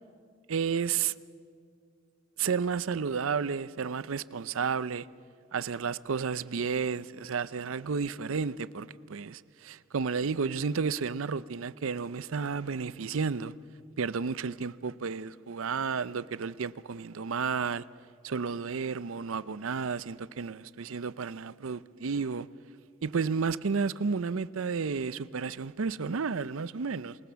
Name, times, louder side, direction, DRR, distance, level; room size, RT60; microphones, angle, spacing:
voice 1, 0.5-1.1 2.4-5.1 5.5-13.5 14.0-17.8 18.2-22.5 23.0-27.2, right 5 dB, 85° right, 0.6 m, -32 dB
27.5 x 21.0 x 7.0 m
head